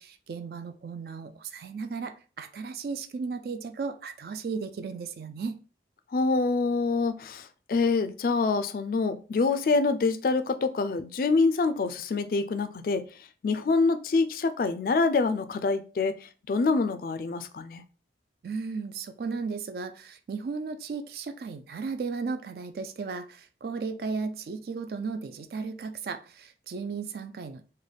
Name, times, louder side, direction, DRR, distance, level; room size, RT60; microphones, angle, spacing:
voice 1, 0.0-5.6 18.4-27.7, right 4 dB, 55° right, 0.3 m, -35 dB
voice 2, 6.1-13.1 13.4-16.2 16.5-17.8, left 4 dB, 50° left, 0.3 m, -26 dB
3.3 x 2.1 x 3.8 m
head